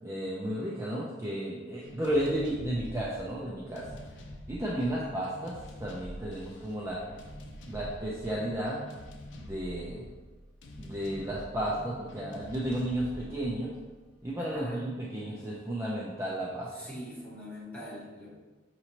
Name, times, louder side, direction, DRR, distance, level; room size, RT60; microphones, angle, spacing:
voice 1, 0.0-3.8 4.5-5.5 5.8-7.0 7.7-8.8 9.3-10.0 10.8-13.7 14.2-16.7, right 1 dB, 15° right, -6 dB, 0.5 m, -33 dB
sound 1, 1.8-14.6, equal, 75° left, 0.5 m, -46 dB
voice 2, 14.4-15.0 16.7-18.3, left 1 dB, 10° left, -8 dB, 1.3 m, -43 dB
6.1 x 3.0 x 2.8 m, 1.3 s
head